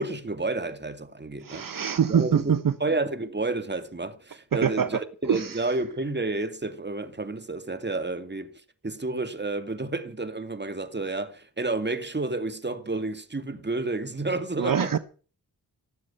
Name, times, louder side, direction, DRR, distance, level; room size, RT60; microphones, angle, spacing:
voice 1, 0.0-1.7 2.1-2.5 2.8-8.5 8.8-15.0, right 2 dB, 25° right, 2.4 m, -30 dB
voice 2, 1.4-2.7 4.5-5.0 5.3-5.6 14.6-15.0, right 8 dB, 55° right, 1.0 m, -24 dB
18.5 x 7.8 x 8.6 m
cardioid pair, 55°, 39 cm